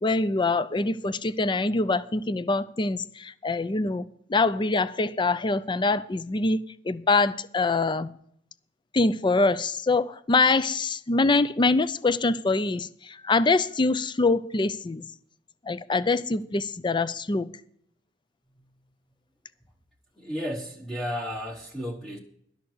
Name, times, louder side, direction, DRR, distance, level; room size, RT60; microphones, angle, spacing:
voice 1, 0.0-8.1 8.9-15.1 15.6-17.5, left 3 dB, 25° left, 0.5 m, -24 dB
voice 2, 20.2-22.2, equal, ahead, 1.0 m, -33 dB
12.0 x 6.5 x 7.9 m
head